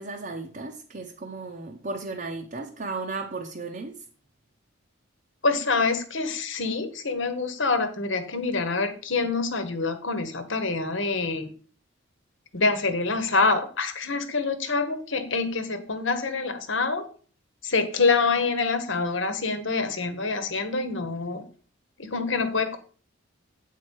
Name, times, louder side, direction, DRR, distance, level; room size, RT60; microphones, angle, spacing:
voice 1, 0.0-4.0, right 3 dB, 40° right, 0.8 m, -35 dB
voice 2, 5.4-11.5 12.5-17.1 17.6-21.4 22.0-22.8, left 4 dB, 65° left, 1.2 m, -26 dB
8.4 x 4.6 x 6.3 m
head